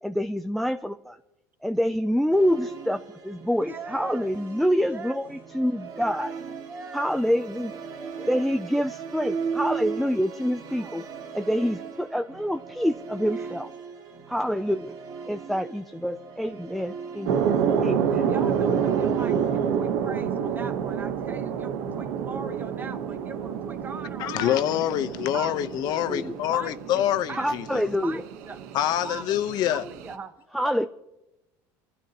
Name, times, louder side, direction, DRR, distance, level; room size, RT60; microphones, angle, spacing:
voice 1, 0.0-1.2 1.6-6.3 6.9-7.8 8.3-11.0 11.3-13.7 14.3-14.9 15.3-18.2 26.1-26.4 27.4-28.2 30.5-30.9, equal, ahead, 0.4 m, -27 dB
Musical instrument, 2.3-20.0, right 6 dB, 55° right, 2.1 m, -38 dB
voice 2, 3.6-4.3 4.9-5.2 6.1-7.1 8.2-8.4 10.7-11.1 13.2-13.6 17.6-24.8 25.3-25.7 26.5-27.5 28.0-28.6 29.0-29.2 29.5-30.3, right 4 dB, 20° right, 1.1 m, -40 dB
sound 1, 17.3-30.1, right 7 dB, 85° right, 1.1 m, -28 dB
voice 3, 24.2-27.8 28.7-29.8, left 12 dB, 55° left, 0.9 m, -26 dB
28.0 x 12.0 x 3.0 m
cardioid pair, 140°, 8 cm